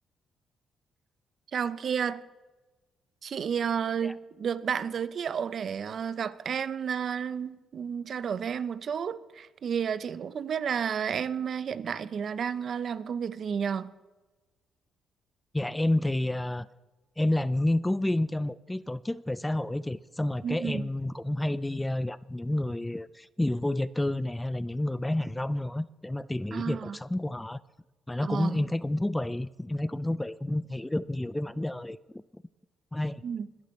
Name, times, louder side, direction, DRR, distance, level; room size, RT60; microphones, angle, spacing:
voice 1, 1.5-2.2 3.2-13.9 20.4-20.9 26.5-27.0 28.2-28.7 33.2-33.5, right 7 dB, 55° right, 0.6 m, -31 dB
voice 2, 15.5-16.7 17.2-27.6 28.1-32.2 32.9-33.2, left 1 dB, 10° left, 0.4 m, -30 dB
21.0 x 11.0 x 3.2 m
cardioid pair, 90°, 0 cm